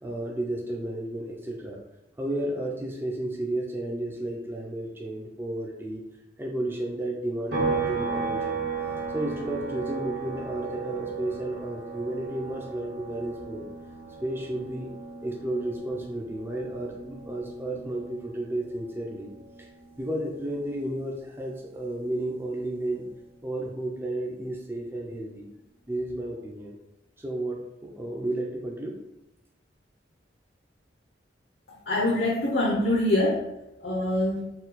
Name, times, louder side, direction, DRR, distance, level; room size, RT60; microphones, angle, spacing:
voice 1, 0.0-1.8 2.2-6.0 6.4-8.6 9.1-13.6 14.2-14.9 15.2-19.3 19.6-19.7 20.0-23.1 23.4-25.5 25.9-26.8 27.2-28.9, right 1 dB, 10° right, -1 dB, 0.5 m, -32 dB
sound 1, 7.5-21.1 21.4-23.6, right 4 dB, 60° right, 1.3 m, -36 dB
voice 2, 31.9-33.4 33.8-34.5, left 1 dB, 60° left, -3 dB, 0.7 m, -24 dB
4.4 x 2.3 x 4.0 m, 0.89 s
head